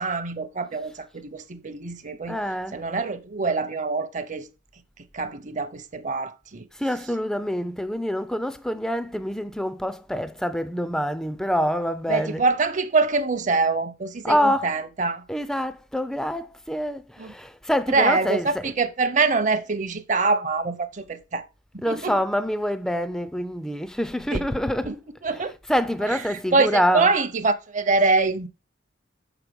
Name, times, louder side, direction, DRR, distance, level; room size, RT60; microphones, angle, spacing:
voice 1, 0.0-2.4 2.7-4.5 5.1-6.7 12.1-15.2 17.2-17.3 17.9-21.5 21.9-22.2 24.3-24.5 24.8-25.0 25.2-25.5 26.3-28.5, right 3 dB, 40° right, 0.7 m, -24 dB
voice 2, 2.3-2.8 6.7-12.5 14.2-14.8 15.3-18.8 21.8-25.0 25.3-27.1, equal, 5° left, 0.4 m, -26 dB
6.6 x 5.9 x 5.2 m
head